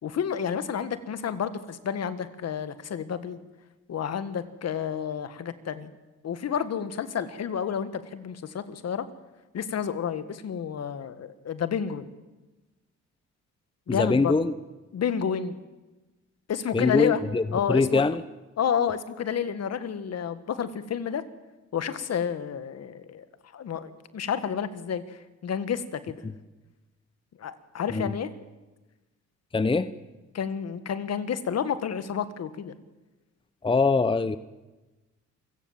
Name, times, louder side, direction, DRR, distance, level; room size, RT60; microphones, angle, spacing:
voice 1, 0.0-3.4 3.9-5.9 6.2-9.0 9.5-12.1 13.9-14.3 14.9-15.6 16.5-17.2 17.5-18.0 18.6-21.2 21.7-23.2 23.5-26.2 27.4-28.3 30.3-32.7, left 7 dB, 55° left, 12 dB, 1.7 m, -30 dB
voice 2, 13.9-14.5 16.7-17.4 17.7-18.2 27.9-28.1 29.5-29.9 33.6-34.4, left 3 dB, 15° left, 14 dB, 0.9 m, -23 dB
28.0 x 17.0 x 7.4 m, 1.1 s
cardioid pair, 90°, 30 cm